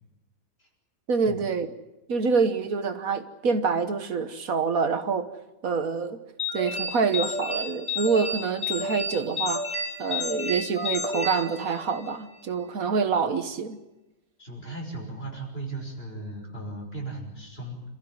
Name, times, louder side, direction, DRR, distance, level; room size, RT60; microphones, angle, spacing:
voice 1, 1.1-1.7 2.1-5.3 5.6-6.2 6.5-9.7 10.0-13.8, right 5 dB, 70° right, 10 dB, 1.7 m, -26 dB
sound 1, 6.4-12.2, left 3 dB, 5° left, 5.6 m, -31 dB
voice 2, 14.4-17.8, right 2 dB, 40° left, 1 dB, 6.0 m, -37 dB
27.5 x 15.0 x 9.2 m, 1.0 s
omnidirectional pair, 1.5 m